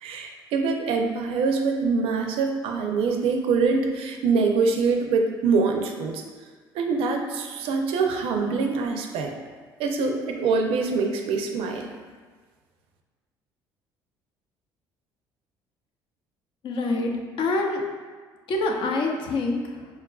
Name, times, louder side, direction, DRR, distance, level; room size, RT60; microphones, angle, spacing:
voice 1, 0.0-6.2 6.7-9.3 9.8-11.9, right 4 dB, 65° right, 4 dB, 0.4 m, -24 dB
voice 2, 16.6-17.8 18.5-20.0, left 2 dB, 55° left, 1 dB, 0.5 m, -26 dB
4.4 x 2.3 x 2.3 m, 1.5 s
supercardioid pair, 70°, 10 cm